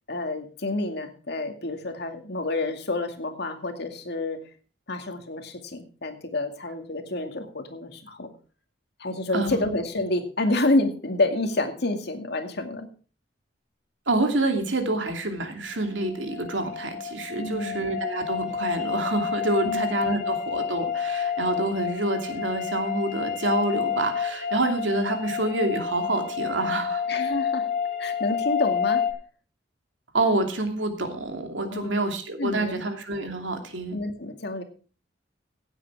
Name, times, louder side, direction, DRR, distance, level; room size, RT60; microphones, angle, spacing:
voice 1, 0.1-4.4 4.9-8.3 9.0-12.9 17.4-17.9 19.6-19.8 27.1-27.7 28.0-29.0 31.7-31.9 32.4-32.8 33.9-34.6, left 2 dB, 60° left, 6 dB, 2.2 m, -28 dB
voice 2, 14.1-27.0 30.1-34.0, right 2 dB, 90° right, 5 dB, 2.7 m, -27 dB
sound 1, 16.0-29.1, left 7 dB, 40° left, 3.6 m, -29 dB
16.5 x 8.3 x 4.7 m, 0.39 s
head